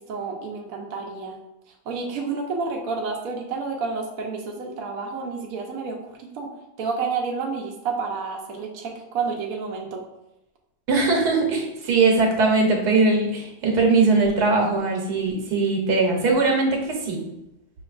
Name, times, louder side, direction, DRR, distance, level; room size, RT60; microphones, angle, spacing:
voice 1, 0.0-1.4 1.9-6.5 6.8-10.0, right 4 dB, 70° right, 0 dB, 1.0 m, -30 dB
voice 2, 10.9-17.2, right 3 dB, 90° right, 0 dB, 1.4 m, -20 dB
5.3 x 3.0 x 2.4 m, 0.90 s
omnidirectional pair, 1.6 m